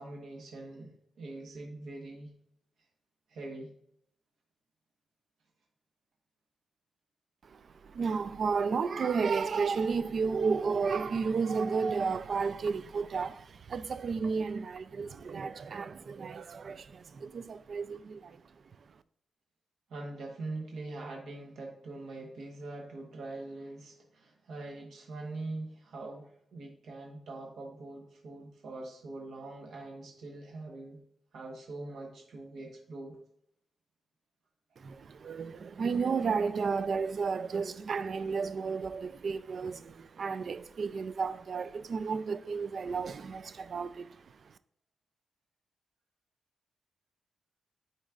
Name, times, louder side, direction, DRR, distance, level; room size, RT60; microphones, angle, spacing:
voice 1, 0.0-2.3 3.3-3.7 19.9-31.0 31.3-33.2, right 2 dB, 75° right, 1.2 m, -43 dB
voice 2, 7.4-18.4 34.8-44.2, right 5 dB, 45° right, 0.3 m, -32 dB
10.0 x 4.1 x 2.4 m
wide cardioid pair, 160°, 0 cm